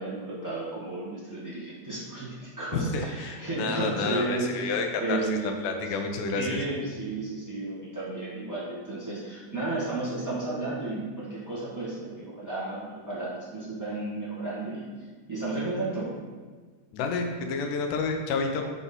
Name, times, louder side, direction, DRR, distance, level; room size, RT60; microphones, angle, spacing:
voice 1, 0.0-5.7 6.3-14.8 15.3-16.1, right 2 dB, 10° right, -9 dB, 1.0 m, -33 dB
voice 2, 2.9-6.6 16.9-18.6, left 4 dB, 90° left, 4 dB, 2.3 m, -30 dB
6.0 x 4.1 x 5.5 m, 1.5 s
omnidirectional pair, 3.6 m